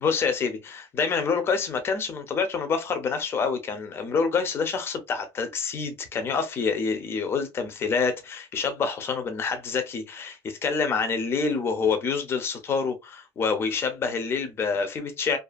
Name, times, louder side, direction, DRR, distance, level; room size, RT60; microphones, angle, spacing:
voice 1, 0.0-15.4, left 5 dB, 25° left, 0.5 m, -27 dB
2.4 x 2.4 x 2.3 m
cardioid pair, 155°, 9 cm